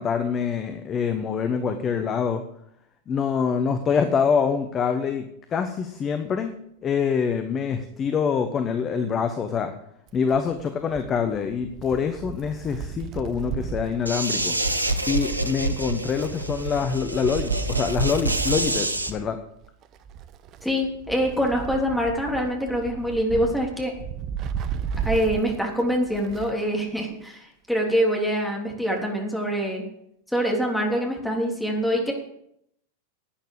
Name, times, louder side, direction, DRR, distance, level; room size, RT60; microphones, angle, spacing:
voice 1, 0.0-2.4 3.1-6.5 6.8-9.7 10.1-14.6 15.1-19.4, left 6 dB, 25° left, 8 dB, 1.1 m, -25 dB
Wind, 10.1-26.7 27.0-27.1 28.1-28.2, right 8 dB, 35° right, 0.9 m, -35 dB
sound 1, 14.1-19.1, right 2 dB, 85° right, 1.1 m, -27 dB
voice 2, 20.6-23.9 25.1-29.8 30.3-32.1, equal, ahead, 0 dB, 3.5 m, -25 dB
11.5 x 9.3 x 8.1 m, 0.75 s
figure-of-eight pair, 90°, 0 cm